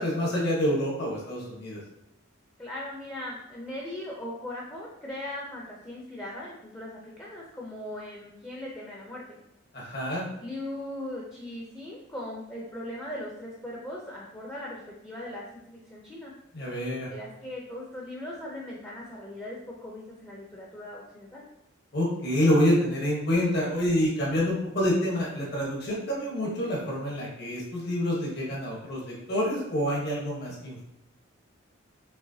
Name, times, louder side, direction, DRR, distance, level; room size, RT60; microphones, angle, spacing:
voice 1, 0.0-1.8 9.7-10.2 16.5-17.1 21.9-29.0 29.3-30.8, equal, 50° left, -4 dB, 1.2 m, -27 dB
voice 2, 2.6-9.4 10.4-16.3 17.1-21.4, left 1 dB, 15° left, -4 dB, 0.6 m, -39 dB
6.1 x 3.1 x 2.7 m, 0.85 s
head